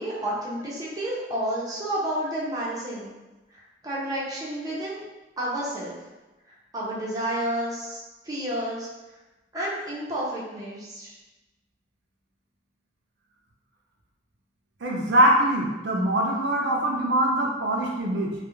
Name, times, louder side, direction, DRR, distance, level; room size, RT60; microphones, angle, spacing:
voice 1, 0.0-3.1 3.8-5.0 5.4-6.0 6.7-8.9 9.5-11.1, right 1 dB, 20° right, -6 dB, 0.5 m, -30 dB
voice 2, 14.8-18.3, right 1 dB, 75° right, -1 dB, 0.4 m, -23 dB
2.3 x 2.0 x 2.9 m, 1.1 s
head